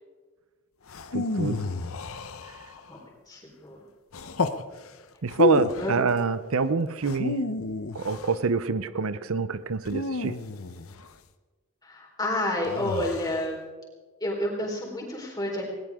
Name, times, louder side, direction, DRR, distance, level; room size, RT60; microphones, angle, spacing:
sound 1, 0.9-2.9 4.1-4.6 5.3-6.0 7.0-8.4 9.8-11.1 12.6-13.4, left 3 dB, 80° left, 0.9 m, -30 dB
voice 1, 1.1-1.6 5.2-7.4 7.9-10.4, right 4 dB, 80° right, 14 dB, 0.7 m, -26 dB
voice 2, 3.3-3.8 5.8-5.9 11.8-13.6 14.2-15.7, left 1 dB, 20° left, -2 dB, 4.2 m, -30 dB
20.5 x 18.5 x 3.7 m, 1.4 s
head